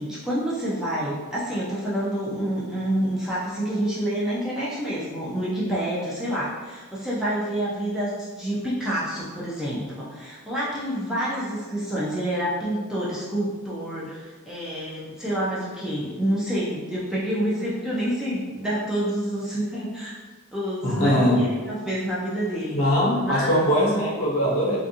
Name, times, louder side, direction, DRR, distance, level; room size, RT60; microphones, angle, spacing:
voice 1, 0.0-20.2 20.5-22.8 23.1-23.5, right 1 dB, 5° right, -8 dB, 0.4 m, -28 dB
voice 2, 20.8-21.4 22.7-24.8, equal, 70° left, -5 dB, 0.8 m, -21 dB
2.5 x 2.4 x 2.6 m, 1.4 s
head